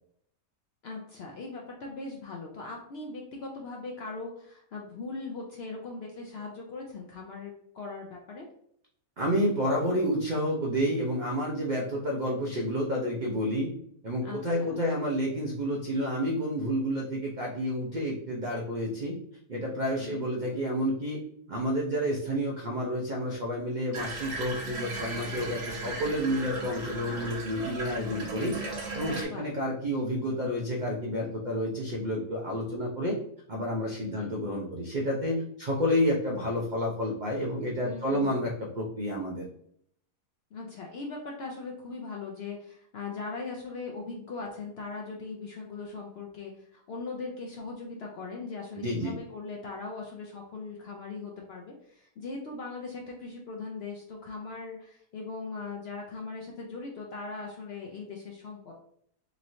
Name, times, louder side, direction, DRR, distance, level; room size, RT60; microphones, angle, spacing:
voice 1, 0.8-8.5 14.2-14.8 20.0-20.3 27.7-28.4 29.1-29.5 34.2-34.3 37.8-38.3 40.5-58.7, left 3 dB, 70° left, -1 dB, 0.6 m, -40 dB
voice 2, 9.2-13.7 14.0-19.2 19.5-21.2 21.5-28.5 28.9-33.2 33.5-39.5 48.8-49.2, equal, 85° right, -2 dB, 0.4 m, -30 dB
Water tap faucet / Bathtub (filling or washing), 23.9-29.2, right 2 dB, 50° right, 1.0 m, -37 dB
3.0 x 2.9 x 2.6 m, 0.68 s
omnidirectional pair, 1.5 m